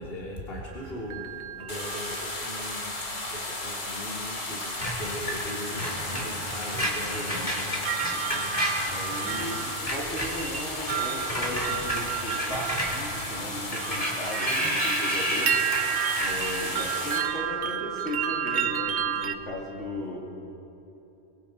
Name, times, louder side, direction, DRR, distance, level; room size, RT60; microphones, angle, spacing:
voice 1, 0.0-9.4 10.8-11.0 14.3-14.7, left 1 dB, 50° left, -5 dB, 3.0 m, -40 dB
sound 1, 0.7-3.5 4.6-5.0 5.3-19.4, right 9 dB, 65° right, 1.1 m, -33 dB
sound 2, 1.7-17.2, left 2 dB, 90° left, 3.1 m, -35 dB
Screech, 4.8-9.5 9.8-17.2, equal, 35° left, 3.6 m, -32 dB
voice 2, 7.1-7.5 8.8-20.2, left 1 dB, 70° left, -3 dB, 3.6 m, -36 dB
30.0 x 22.0 x 4.6 m, 2.9 s
omnidirectional pair, 1.3 m